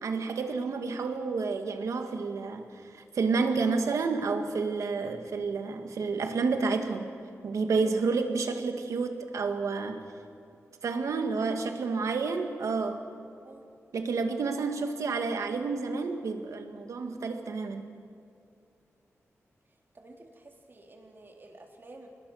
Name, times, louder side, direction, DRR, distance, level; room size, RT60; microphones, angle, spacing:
voice 1, 0.0-7.1 7.4-10.0 10.8-13.1 13.9-17.8, right 4 dB, 90° right, 6 dB, 1.9 m, -30 dB
voice 2, 11.6-12.0 12.3-12.5 13.4-13.6 14.6-14.7 19.9-22.1, right 2 dB, 45° right, 1 dB, 3.6 m, -50 dB
25.0 x 20.0 x 6.5 m, 2.5 s
wide cardioid pair, 85°, 5 cm